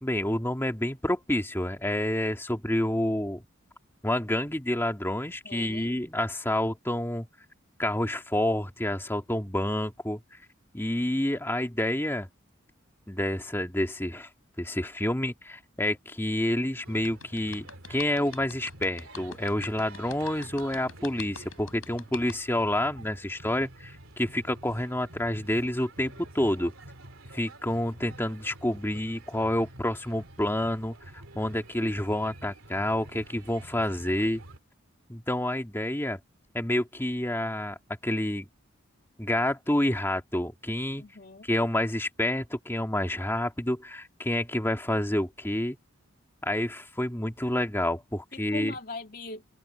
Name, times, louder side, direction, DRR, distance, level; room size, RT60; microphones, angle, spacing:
voice 1, 0.0-3.4 4.0-7.3 7.8-10.2 10.7-12.3 13.1-14.3 14.6-26.7 27.3-30.9 31.4-34.4 35.1-36.2 36.5-37.8 38.0-38.5 39.2-41.0 41.4-45.8 46.4-48.8, left 1 dB, 10° left, 2.2 m, -28 dB
voice 2, 5.4-5.9 41.0-41.5 48.3-49.4, left 3 dB, 45° left, 2.5 m, -40 dB
sound 1, 16.8-34.6, right 2 dB, 75° right, 3.3 m, -48 dB
sound 2, 17.0-22.3, left 6 dB, 85° left, 7.2 m, -43 dB
head